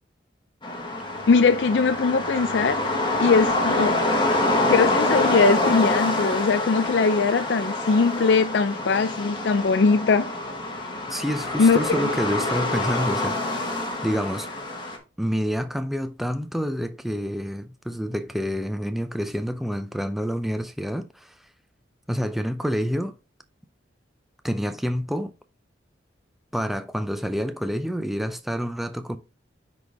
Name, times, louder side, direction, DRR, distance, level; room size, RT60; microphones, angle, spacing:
sound 1, 0.6-15.0, left 2 dB, 25° left, 1.4 m, -26 dB
voice 1, 1.3-2.8 3.2-4.1 4.7-10.3 11.6-11.9, left 4 dB, 70° left, 0.4 m, -20 dB
voice 2, 11.1-13.8 14.0-14.5 15.2-21.3 22.1-23.2 24.4-25.3 26.5-29.2, equal, ahead, 0.5 m, -28 dB
9.6 x 4.1 x 3.5 m
head